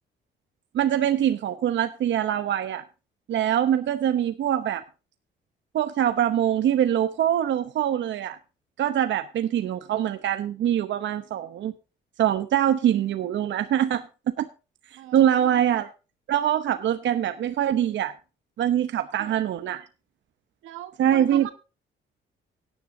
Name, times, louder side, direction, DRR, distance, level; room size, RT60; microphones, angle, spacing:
voice 1, 0.7-2.8 3.3-4.8 5.7-8.4 8.8-11.7 12.2-14.5 15.1-15.9 16.3-18.1 18.6-19.8 21.0-21.5, right 10 dB, 65° right, 0.9 m, -23 dB
voice 2, 14.9-15.6 19.2-19.4 20.6-21.5, right 12 dB, 90° right, 1.4 m, -40 dB
16.5 x 10.0 x 2.7 m
cardioid pair, 90°, 20 cm